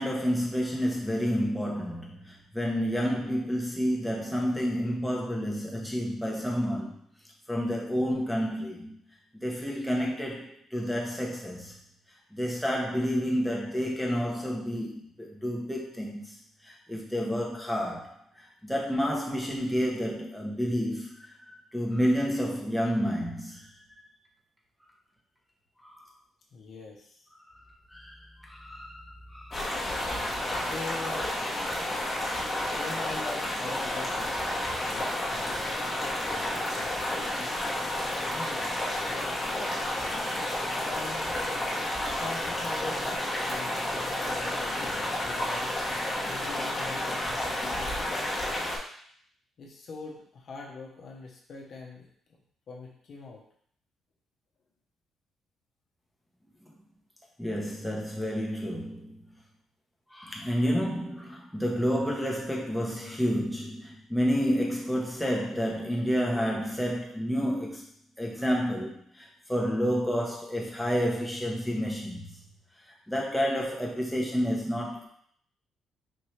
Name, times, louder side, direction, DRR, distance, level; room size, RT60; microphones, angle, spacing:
voice 1, 0.0-7.0 7.5-8.9 9.4-11.7 12.3-16.3 16.6-21.3 21.7-23.7 25.8-26.0 27.9-28.2 28.5-29.6 30.6-30.7 57.4-59.2 60.1-67.8 68.2-72.3 73.1-75.1, equal, ahead, -3 dB, 1.0 m, -30 dB
voice 2, 26.5-27.3 30.7-31.4 32.8-37.6 38.2-38.7 40.8-41.4 42.1-43.8 44.2-45.7 46.3-48.6 49.6-52.1 52.7-53.4, left 3 dB, 60° left, -1 dB, 0.9 m, -43 dB
sound 1, 29.5-48.8, left 1 dB, 30° left, 1.1 m, -31 dB
4.4 x 2.7 x 3.2 m, 0.62 s
cardioid pair, 90°, 0 cm